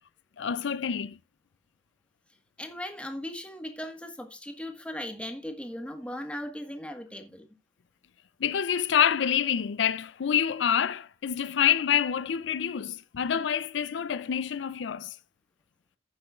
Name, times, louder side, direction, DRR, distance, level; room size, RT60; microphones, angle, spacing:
voice 1, 0.4-1.2 8.4-15.2, left 8 dB, 70° left, 0.4 m, -27 dB
voice 2, 2.6-7.5, left 1 dB, 5° left, 1.5 m, -38 dB
15.5 x 6.9 x 2.4 m
head